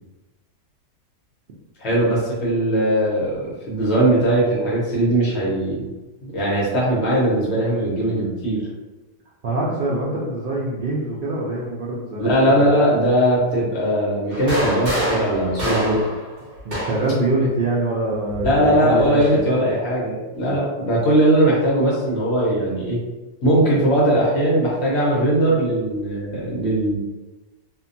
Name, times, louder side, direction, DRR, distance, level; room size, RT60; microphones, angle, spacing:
voice 1, 1.8-5.8 6.2-8.6 12.2-16.0 18.4-23.0 23.4-27.0, right 1 dB, 55° left, -6 dB, 1.0 m, -19 dB
voice 2, 9.4-12.6 15.6-15.7 16.6-19.7, right 2 dB, 85° right, -5 dB, 0.4 m, -25 dB
sound 1, 14.3-17.2 18.3-19.4, equal, 45° right, 1.0 m, -26 dB
2.7 x 2.2 x 2.6 m, 1.1 s
omnidirectional pair, 1.5 m